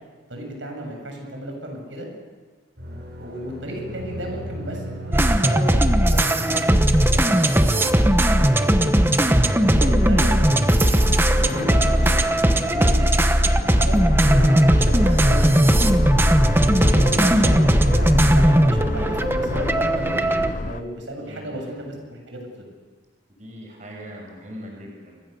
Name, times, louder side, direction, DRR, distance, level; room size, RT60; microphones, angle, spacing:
voice 1, 0.3-2.1 2.8-8.8 9.6-12.3 12.6-14.0 14.2-15.9 16.6-22.7, right 1 dB, 85° right, 2 dB, 7.7 m, -34 dB
sound 1, 2.8-11.3, equal, 60° right, 6.2 m, -35 dB
sound 2, 5.1-20.5, right 1 dB, 10° right, 1.0 m, -18 dB
sound 3, 9.8-20.8, left 2 dB, 40° left, 0.7 m, -30 dB
voice 2, 21.2-21.9 23.4-25.2, equal, 40° right, 0 dB, 6.1 m, -41 dB
29.5 x 24.0 x 6.9 m, 1.4 s
head